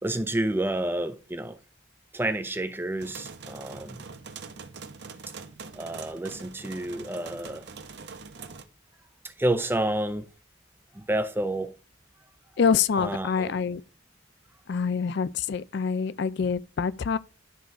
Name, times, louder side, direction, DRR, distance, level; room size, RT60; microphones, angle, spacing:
voice 1, 0.0-1.6 2.1-4.0 5.7-7.7 9.2-10.3 10.9-11.7 13.0-13.5, right 1 dB, 10° right, 0.6 m, -29 dB
sound 1, 3.0-8.6, right 5 dB, 55° right, 0.9 m, -43 dB
voice 2, 12.6-13.8 14.7-17.2, left 6 dB, 55° left, 0.4 m, -26 dB
11.5 x 3.9 x 4.6 m
head